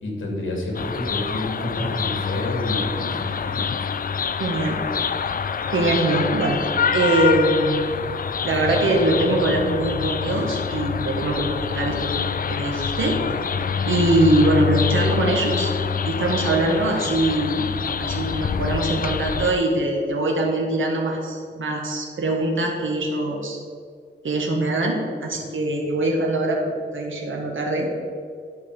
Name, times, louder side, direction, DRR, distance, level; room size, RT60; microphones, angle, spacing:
voice 1, 0.0-3.5, left 1 dB, 80° left, -1 dB, 2.6 m, -29 dB
sound 1, 0.7-19.5, left 6 dB, 45° left, 0.4 m, -26 dB
voice 2, 4.4-4.8 5.7-6.6 6.9-7.9 8.4-13.2 13.8-15.7 16.0-17.7 18.0-23.6 24.2-28.0, right 1 dB, 80° right, 0 dB, 1.6 m, -22 dB
12.0 x 5.5 x 4.9 m, 2.1 s
wide cardioid pair, 120°, 20 cm